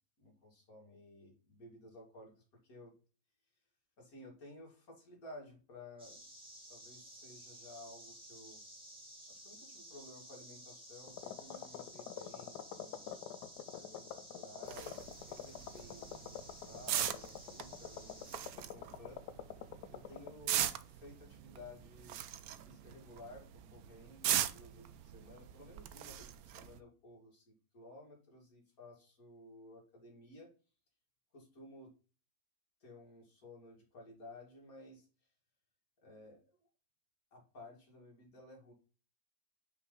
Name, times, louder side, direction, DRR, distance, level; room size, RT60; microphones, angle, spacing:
voice 1, 0.2-2.3 2.6-2.9 4.0-6.3 6.7-8.6 9.3-13.0 13.7-19.2 19.9-20.7 20.9-22.2 22.6-30.5 31.3-31.9 32.8-35.1 36.0-36.4 37.3-38.7, left 1 dB, 60° left, -1 dB, 2.8 m, -55 dB
sound 1, 6.0-18.4, equal, 5° right, 2.0 m, -54 dB
sound 2, 11.1-20.3, left 10 dB, 85° left, 1.2 m, -47 dB
sound 3, 14.7-26.8, right 11 dB, 70° right, 1.0 m, -40 dB
5.8 x 4.7 x 3.9 m, 0.34 s
omnidirectional pair, 1.7 m